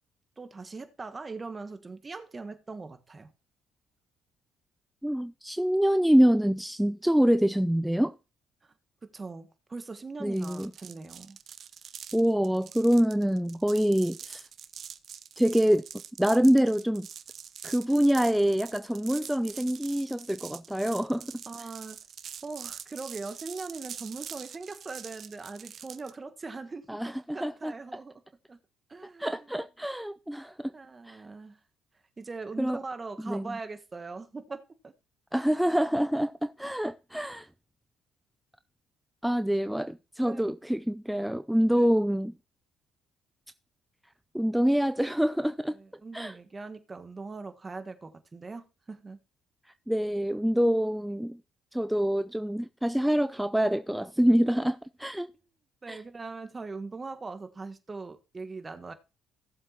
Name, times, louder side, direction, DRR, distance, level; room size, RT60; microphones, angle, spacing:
voice 1, 0.4-3.3 8.6-8.7 9.0-11.4 21.5-22.0 22.4-28.2 28.5-28.6 28.9-29.6 30.7-31.6 32.2-34.9 40.2-40.4 41.7-41.9 45.7-49.2 55.8-58.9, right 3 dB, 30° right, 1.4 m, -41 dB
voice 2, 5.0-8.2 10.2-10.7 12.1-14.5 15.4-15.8 16.2-17.1 17.6-21.4 26.9-27.7 29.2-30.7 31.1-31.2 32.6-32.8 33.2-33.6 35.3-37.5 39.2-42.3 44.3-45.8 46.1-46.4 49.9-51.4 51.7-55.3 55.9-56.0, equal, 5° right, 0.4 m, -26 dB
sound 1, 10.3-26.2, right 8 dB, 55° right, 0.7 m, -45 dB
17.0 x 7.4 x 2.9 m
hypercardioid pair, 55°, 0 cm